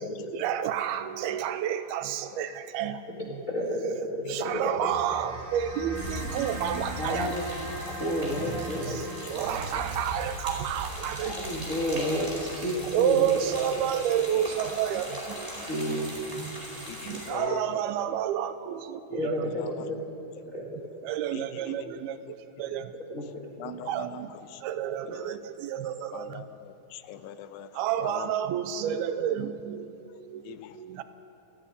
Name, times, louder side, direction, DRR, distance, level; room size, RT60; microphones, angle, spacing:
voice 1, 0.3-3.4 3.8-3.9 4.3-7.3 8.4-11.5 12.9-15.7 16.2-19.5 20.6-22.9 23.6-24.3 24.6-26.4 27.7-31.0, right 10 dB, 80° right, 11 dB, 2.5 m, -30 dB
voice 2, 3.5-4.9 7.0-7.4 8.0-8.8 9.1-9.2 11.2-13.3 15.7-16.1 19.1-20.0 20.5-20.8 23.1-23.2 25.1-25.2, equal, 45° left, -3 dB, 1.0 m, -31 dB
sound 1, 4.5-15.1, left 1 dB, 55° right, 6.6 m, -42 dB
sound 2, 5.9-17.3, equal, 15° right, 4.9 m, -40 dB
sound 3, 6.5-14.4, right 1 dB, 30° right, 5.3 m, -45 dB
voice 3, 8.4-9.0 9.5-9.8 16.9-17.8 19.4-19.9 21.3-21.9 22.7-22.8 23.6-24.2 24.5-24.6 25.1-25.4 26.1-27.7 28.0-28.3 30.4-30.8, left 11 dB, 85° left, 11 dB, 2.9 m, -42 dB
28.0 x 9.8 x 10.0 m, 2.8 s
omnidirectional pair, 4.7 m